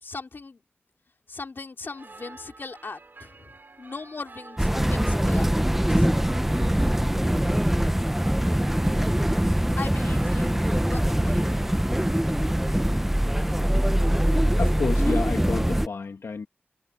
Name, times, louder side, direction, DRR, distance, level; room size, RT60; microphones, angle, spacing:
voice 1, 0.0-0.6 1.3-5.5 6.0-6.1 9.8-10.6 10.9-11.4, left 3 dB, 50° left, 3.0 m, -39 dB
sound 1, 1.8-12.9, right 3 dB, 50° right, 4.6 m, -49 dB
sound 2, 4.6-15.9, equal, 5° right, 0.7 m, -23 dB
voice 2, 14.6-16.5, left 4 dB, 80° left, 2.3 m, -30 dB
wide cardioid pair, 105°, 4 cm